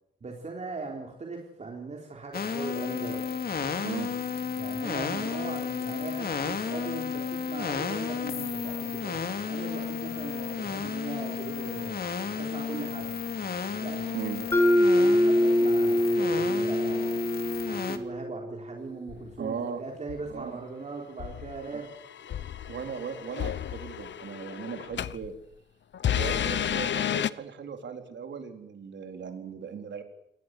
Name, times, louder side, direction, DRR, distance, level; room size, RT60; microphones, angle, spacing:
voice 1, 0.2-3.2 4.6-12.0 12.4-13.1 13.8-17.2 17.7-21.9, right 3 dB, 40° right, 0 dB, 4.0 m, -39 dB
sound 1, 2.3-18.0, left 6 dB, 55° left, 2.6 m, -32 dB
Mallet percussion, 14.5-18.5, left 1 dB, 15° left, 3.1 m, -24 dB
sound 2, 19.1-19.4 20.1-20.4 21.2-25.3 25.9-27.3, left 10 dB, 85° left, 1.0 m, -32 dB
voice 2, 19.4-19.8 20.3-20.6 21.7-21.8 22.7-25.3 26.2-30.0, right 6 dB, 80° right, 5 dB, 4.2 m, -37 dB
29.0 x 19.5 x 7.9 m, 0.78 s
wide cardioid pair, 160°, 18 cm